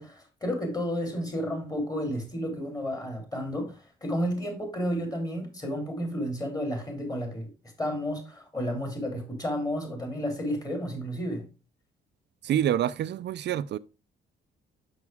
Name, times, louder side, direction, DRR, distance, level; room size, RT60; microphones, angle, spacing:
voice 1, 0.0-7.5 7.8-11.4, equal, 20° left, 3.3 m, -32 dB
voice 2, 12.4-13.8, right 11 dB, 60° right, 0.4 m, -27 dB
6.1 x 6.0 x 3.5 m
cardioid pair, 90°, 20 cm